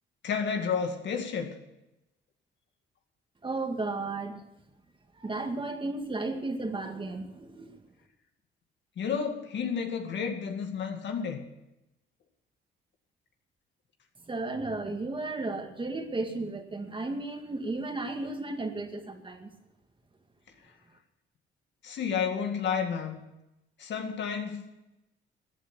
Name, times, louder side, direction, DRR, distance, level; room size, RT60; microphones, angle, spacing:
voice 1, 0.2-1.6 9.0-11.4 21.8-23.2 23.8-24.6, left 6 dB, 65° left, 4 dB, 2.2 m, -31 dB
voice 2, 3.4-4.4 5.1-7.8 14.3-19.5, right 2 dB, 25° right, 5 dB, 2.1 m, -34 dB
14.0 x 9.3 x 8.4 m, 0.90 s
cardioid pair, 90°, 20 cm